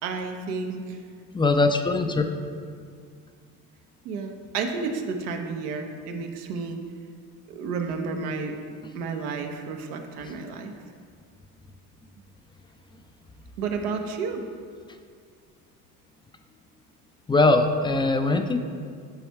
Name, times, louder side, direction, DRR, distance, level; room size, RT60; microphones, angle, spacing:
voice 1, 0.0-1.0 4.0-6.8 7.5-8.6 8.9-10.7 13.6-14.4, right 4 dB, 85° right, 4 dB, 0.8 m, -31 dB
voice 2, 1.3-2.3 17.3-18.6, left 2 dB, 10° left, 7 dB, 0.3 m, -21 dB
9.1 x 3.5 x 4.5 m, 2.1 s
hypercardioid pair, 70°, 47 cm